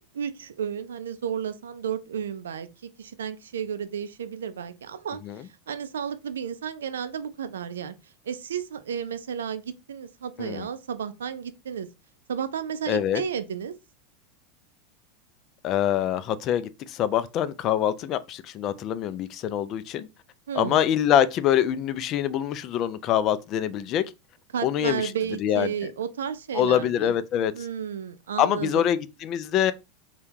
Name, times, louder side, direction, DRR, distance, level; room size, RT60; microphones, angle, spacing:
voice 1, 0.0-2.7 3.0-8.0 8.3-11.9 12.3-13.7 20.5-20.8 24.5-27.1 27.5-28.8, right 8 dB, 90° right, 0.3 m, -32 dB
voice 2, 12.9-13.2 15.6-20.1 20.5-24.0 24.6-25.1 25.4-25.7 26.5-27.7 28.4-29.7, left 10 dB, 45° left, 0.3 m, -25 dB
3.4 x 2.2 x 2.8 m
hypercardioid pair, 100°, 0 cm